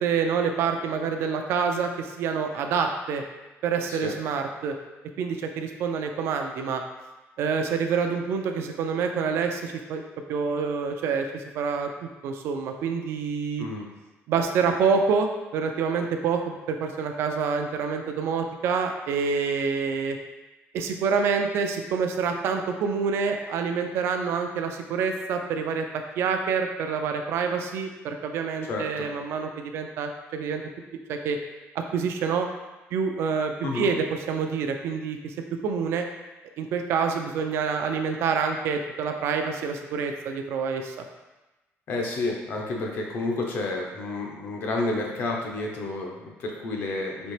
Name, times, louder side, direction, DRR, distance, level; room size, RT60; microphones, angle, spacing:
voice 1, 0.0-3.2 3.6-4.8 5.2-6.8 7.4-10.0 10.3-13.7 14.3-20.2 20.7-30.6 31.1-31.4 31.8-32.5 32.9-35.3 35.6-36.1 36.6-41.0, right 5 dB, 65° right, 4 dB, 0.4 m, -27 dB
voice 2, 28.7-29.1 33.6-33.9 41.9-47.3, left 2 dB, 50° left, 0 dB, 0.7 m, -30 dB
4.2 x 2.8 x 3.2 m, 1.1 s
cardioid pair, 175°, 5 cm